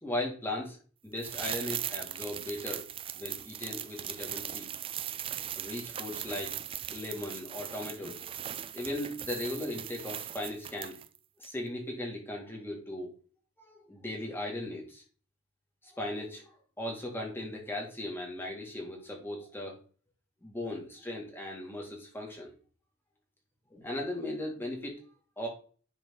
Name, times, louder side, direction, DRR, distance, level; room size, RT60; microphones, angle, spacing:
voice 1, 0.0-0.8 1.0-2.9 3.1-4.7 5.6-6.6 6.9-8.2 8.7-11.0 11.4-13.1 13.6-15.0 15.8-19.8 20.4-22.5 23.7-25.0 25.4-25.5, left 1 dB, 10° left, -1 dB, 2.0 m, -37 dB
sound 1, 1.2-11.2 11.4-11.5, right 10 dB, 25° right, 0.3 m, -39 dB
10.0 x 3.9 x 3.8 m, 0.40 s
head